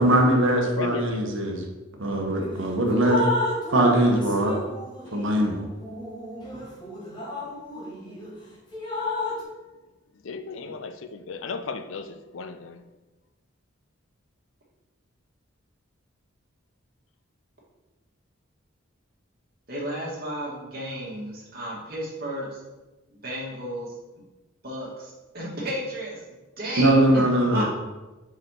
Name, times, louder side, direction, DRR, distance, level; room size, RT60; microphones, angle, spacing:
voice 1, 0.0-1.7 2.0-3.2 3.7-4.5 5.1-5.6 26.8-27.7, right 1 dB, 70° right, 1 dB, 1.1 m, -21 dB
voice 2, 0.6-1.4 5.0-5.2 10.2-12.8, left 4 dB, 70° left, 10 dB, 0.5 m, -35 dB
Drip, 2.3-2.5 2.9-8.3 8.7-9.4, left 1 dB, 20° left, 1.5 m, -32 dB
voice 3, 19.7-22.6 23.1-23.9 24.6-26.2 26.6-27.7, right 1 dB, 45° right, -5 dB, 2.0 m, -33 dB
5.2 x 4.8 x 4.8 m, 1.1 s
head